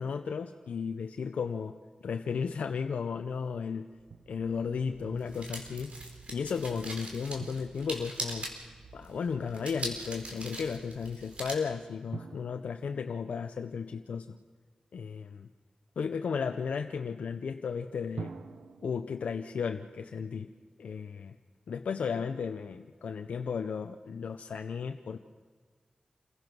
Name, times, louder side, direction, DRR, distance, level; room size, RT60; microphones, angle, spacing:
voice 1, 0.0-3.9 4.3-5.9 6.3-8.5 8.9-14.4 14.9-15.5 16.0-18.3 18.8-20.5 20.8-21.4 21.7-25.2, left 6 dB, 85° left, 6 dB, 0.6 m, -34 dB
sound 1, 4.0-11.5, right 1 dB, 65° right, 4.5 m, -42 dB
Drum, 4.1-4.9 7.4-9.2 12.1-14.6 18.2-21.3, right 6 dB, 85° right, 0.9 m, -49 dB
28.0 x 16.0 x 6.2 m, 1.5 s
cardioid pair, 45°, 2 cm